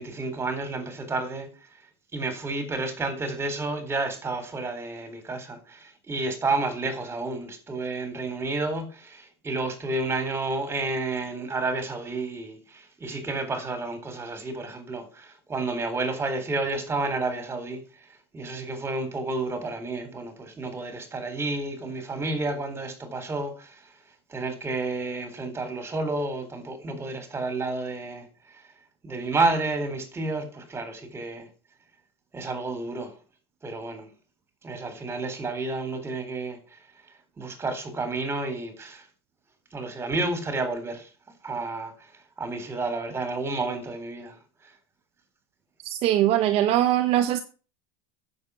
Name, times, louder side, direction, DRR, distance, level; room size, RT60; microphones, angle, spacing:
voice 1, 0.0-1.5 2.1-17.8 18.3-23.8 24.3-28.3 29.0-31.5 32.3-33.1 33.6-34.1 34.6-36.6 37.4-39.0 39.7-41.1 41.4-41.9 42.4-44.4, right 3 dB, 20° right, 3.9 m, -30 dB
voice 2, 45.8-47.4, right 12 dB, 55° right, 1.1 m, -21 dB
9.6 x 7.5 x 6.9 m
supercardioid pair, 110°, 13 cm